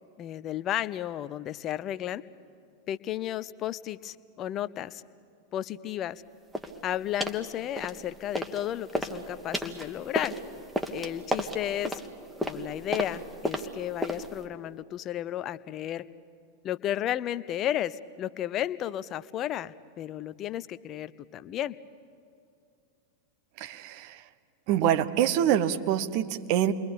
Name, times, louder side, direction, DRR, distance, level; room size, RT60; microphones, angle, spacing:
voice 1, 0.2-2.2 2.9-5.0 5.5-6.2 6.8-10.3 10.9-12.0 12.4-16.0 16.6-21.7, left 12 dB, 30° left, 16 dB, 0.7 m, -33 dB
sound 1, 6.5-6.8 7.2-7.5 7.8-8.6 8.9-14.4, right 1 dB, 5° right, 1.7 m, -33 dB
voice 2, 23.6-24.2 24.7-26.7, right 10 dB, 45° right, 10 dB, 1.1 m, -25 dB
29.0 x 22.5 x 8.8 m, 2.4 s
figure-of-eight pair, 90°, 0 cm